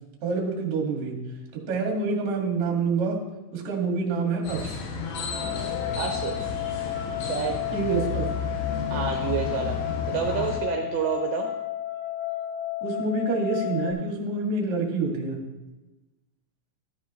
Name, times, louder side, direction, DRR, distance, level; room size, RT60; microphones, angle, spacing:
voice 1, 0.2-1.2 1.5-3.2 3.5-4.8 7.7-8.2 12.8-15.4, right 4 dB, 50° right, -1 dB, 2.4 m, -27 dB
sound 1, 4.4-10.6, left 4 dB, 90° left, 3.9 m, -32 dB
sound 2, 5.3-13.9, left 13 dB, 20° right, 3.1 m, -32 dB
voice 2, 5.9-6.4 7.3-7.6 8.9-9.8 10.1-11.5, right 9 dB, 75° right, 2 dB, 2.7 m, -29 dB
13.5 x 10.5 x 3.1 m, 1.1 s
omnidirectional pair, 5.7 m